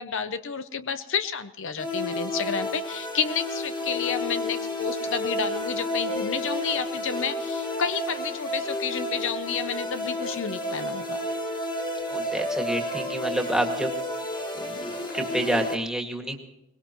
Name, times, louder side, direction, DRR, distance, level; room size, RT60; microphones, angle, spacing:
voice 1, 0.0-11.2, left 6 dB, 65° left, 11 dB, 0.7 m, -30 dB
sound 1, 1.8-15.7, left 1 dB, 25° left, 1.7 m, -31 dB
voice 2, 12.1-13.9 14.7-16.5, right 1 dB, 5° right, 2 dB, 2.0 m, -28 dB
23.0 x 20.5 x 3.0 m, 0.90 s
head